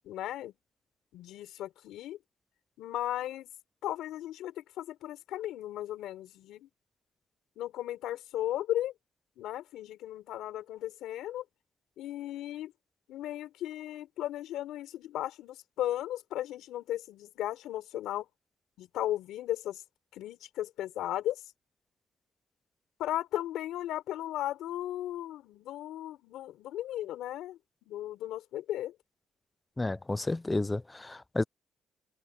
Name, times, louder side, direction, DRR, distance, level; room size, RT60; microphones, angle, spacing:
voice 1, 0.0-0.5 1.1-2.2 2.8-3.5 3.8-6.7 7.6-8.9 9.4-11.4 12.0-12.7 13.1-18.3 18.8-19.8 20.1-21.4 23.0-27.6 27.9-28.9, left 13 dB, 85° left, 3.8 m, -36 dB
voice 2, 29.8-31.4, left 2 dB, 15° left, 0.4 m, -31 dB
open air
cardioid pair, 90°, 0 cm